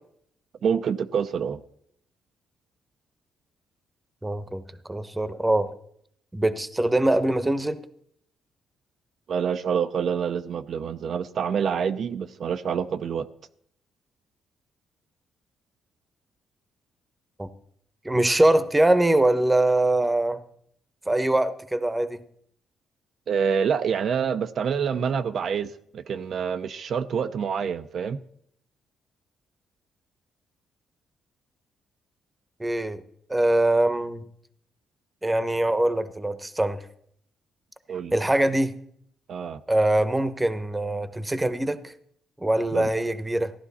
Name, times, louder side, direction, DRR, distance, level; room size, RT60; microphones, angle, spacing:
voice 1, 0.6-1.6 9.3-13.3 23.3-28.2 37.9-38.1 39.3-39.6 42.7-42.9, right 7 dB, 60° right, 9 dB, 0.6 m, -27 dB
voice 2, 4.2-5.7 6.3-7.8 17.4-17.5 18.0-20.4 21.1-22.2 32.6-33.0 33.3-34.2 35.2-36.9 38.1-38.7 39.7-41.9 42.4-43.5, right 1 dB, 10° right, 12 dB, 1.0 m, -23 dB
15.5 x 11.5 x 4.2 m, 0.68 s
cardioid pair, 90°, 0 cm